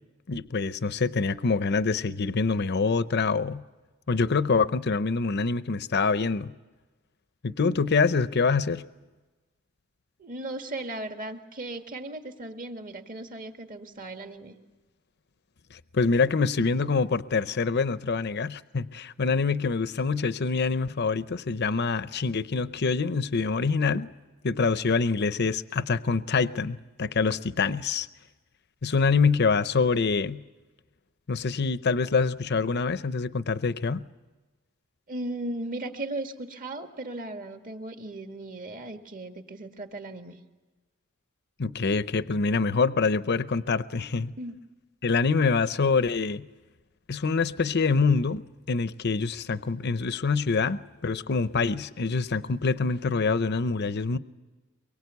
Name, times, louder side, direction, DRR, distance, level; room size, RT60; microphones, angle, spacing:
voice 1, 0.3-3.6 4.1-6.5 7.4-8.8 15.7-24.1 24.4-28.1 28.8-30.4 31.3-34.0 41.6-44.3 45.0-46.5 47.1-48.4 48.7-54.2, left 4 dB, 55° left, 14 dB, 0.7 m, -25 dB
voice 2, 10.2-14.5 35.1-40.4 44.4-44.5, right 2 dB, 40° right, 6 dB, 1.8 m, -37 dB
23.5 x 22.5 x 8.2 m, 1.2 s
head